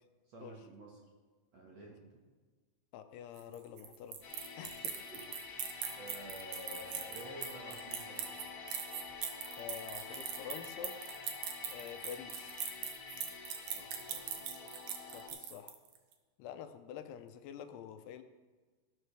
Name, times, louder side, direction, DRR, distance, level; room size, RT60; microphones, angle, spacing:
voice 1, 0.3-0.9 1.5-2.2 4.6-4.7 5.1-5.2 6.0-8.4 13.7-14.4, right 1 dB, 55° right, -2 dB, 2.0 m, -50 dB
voice 2, 2.9-4.2 4.6-5.1 9.6-11.0 11.7-12.6 15.1-15.8 16.4-18.2, left 9 dB, 85° left, 8 dB, 2.8 m, -47 dB
sound 1, 3.4-16.0, right 8 dB, 70° right, 1.9 m, -41 dB
sound 2, 4.2-15.3, left 5 dB, 50° left, 3.0 m, -48 dB
14.5 x 12.5 x 3.4 m, 1.4 s
omnidirectional pair, 4.7 m